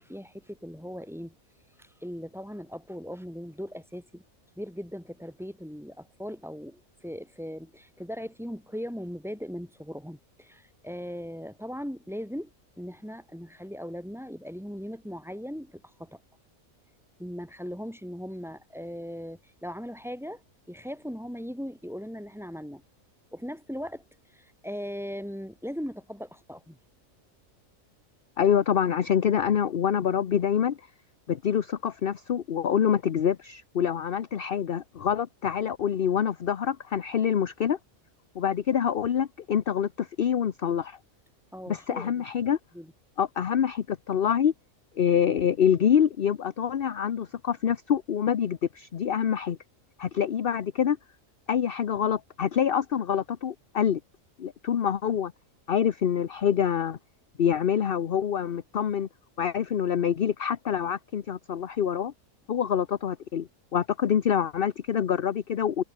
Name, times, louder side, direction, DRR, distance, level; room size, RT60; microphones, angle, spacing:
voice 1, 0.0-1.3 1.8-4.2 4.6-12.5 12.8-16.2 17.2-20.4 20.7-22.8 23.3-24.0 24.3-26.8 41.5-42.2 42.7-42.9, equal, ahead, 2.7 m, -39 dB
voice 2, 28.4-30.8 31.3-37.8 38.3-41.0 41.7-42.6 43.2-44.5 45.0-49.6 50.0-51.0 51.5-54.0 54.4-55.3 55.7-57.0 57.4-59.1 59.4-62.1 62.5-65.8, left 8 dB, 50° left, 0.9 m, -26 dB
omnidirectional pair, 1.4 m